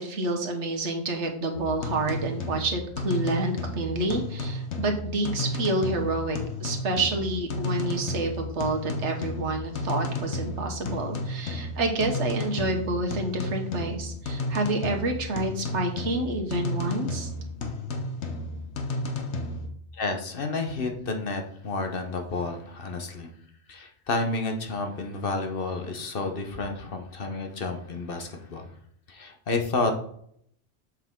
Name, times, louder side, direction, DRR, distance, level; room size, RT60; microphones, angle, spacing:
voice 1, 0.0-17.3, right 2 dB, 85° right, 4 dB, 1.5 m, -28 dB
sound 1, 1.5-19.7, left 2 dB, 80° left, 1.3 m, -33 dB
voice 2, 19.9-23.3 23.7-28.7 29.1-30.0, left 3 dB, 55° left, 4 dB, 1.1 m, -30 dB
7.4 x 5.9 x 3.7 m, 0.67 s
omnidirectional pair, 1.2 m